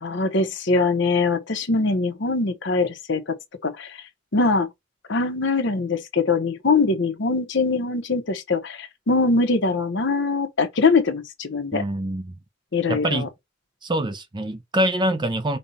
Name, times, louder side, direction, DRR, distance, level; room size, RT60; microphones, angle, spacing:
voice 1, 0.0-3.2 3.6-4.0 4.3-4.7 5.1-11.8 12.7-13.3, left 3 dB, 60° left, 0.9 m, -22 dB
voice 2, 11.7-12.3 12.9-13.3 13.8-15.6, right 1 dB, 20° right, 0.5 m, -25 dB
5.4 x 2.4 x 4.0 m
head